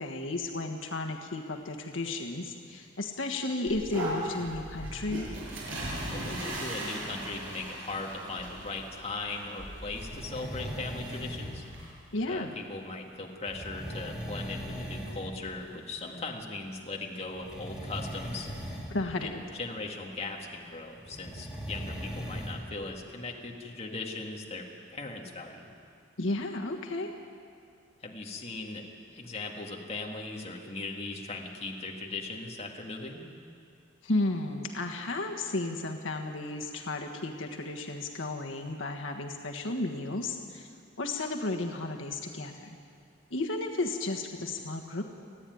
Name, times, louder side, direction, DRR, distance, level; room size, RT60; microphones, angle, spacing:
voice 1, 0.0-5.3 12.1-12.5 18.9-19.3 26.2-27.1 34.0-40.7 41.0-42.7 43.3-45.0, left 2 dB, 80° left, 2 dB, 1.5 m, -33 dB
sound 1, 3.7-11.9, right 1 dB, 75° right, 6.9 m, -38 dB
voice 2, 6.1-11.6 12.3-18.5 19.2-24.6 24.9-25.7 28.0-28.9 29.1-33.2, left 3 dB, 35° left, 0 dB, 2.0 m, -39 dB
sound 2, 10.0-11.6 13.5-15.3 15.6-15.9 17.3-19.0 21.1-22.5, equal, 5° right, 3.4 m, -39 dB
29.5 x 10.0 x 9.4 m, 2.3 s
head